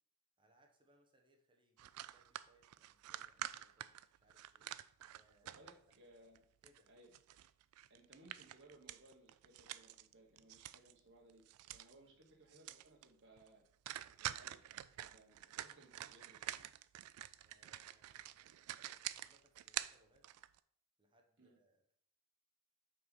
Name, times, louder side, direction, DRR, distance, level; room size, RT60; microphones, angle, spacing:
voice 1, 0.4-4.8 5.1-5.6 6.6-6.9 12.0-12.2 17.4-20.2 21.0-22.0, right 1 dB, 20° right, 2 dB, 0.9 m, -73 dB
sound 1, 1.8-6.0 6.3-11.0 11.3-11.9 12.2-12.3 12.5-13.1 13.4-13.5 13.9-20.6, right 13 dB, 75° right, 0.3 m, -48 dB
voice 2, 5.4-6.4 6.9-7.1 7.9-11.4 11.7-13.6 14.2-16.6 21.4-21.6, right 1 dB, 55° right, -1 dB, 1.2 m, -64 dB
5.5 x 4.1 x 5.2 m, 0.65 s
head